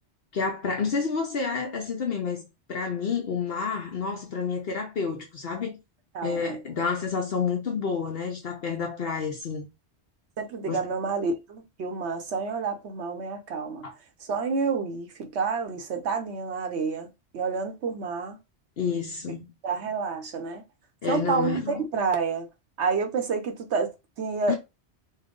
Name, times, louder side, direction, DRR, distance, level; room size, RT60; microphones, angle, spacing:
voice 1, 0.3-5.8 6.2-9.7 10.7-10.9 13.8-13.9 18.8-19.4 21.0-21.8 24.5-24.6, left 5 dB, 60° left, 1.0 m, -29 dB
voice 2, 6.1-6.6 10.4-13.9 14.2-18.4 19.6-20.6 21.1-22.5 22.8-24.5, right 5 dB, 75° right, 1.1 m, -29 dB
4.3 x 2.1 x 3.7 m
omnidirectional pair, 1.1 m